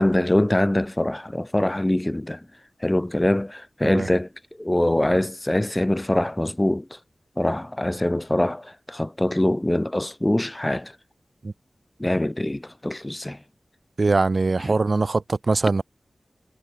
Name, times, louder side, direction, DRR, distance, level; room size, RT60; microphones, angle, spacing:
voice 1, 0.0-2.4 2.8-4.3 4.6-7.0 7.4-10.9 12.0-13.4 14.6-14.7, left 1 dB, 20° left, 1.2 m, -23 dB
voice 2, 14.0-15.8, right 3 dB, 60° right, 0.4 m, -22 dB
cardioid pair, 45°, 0 cm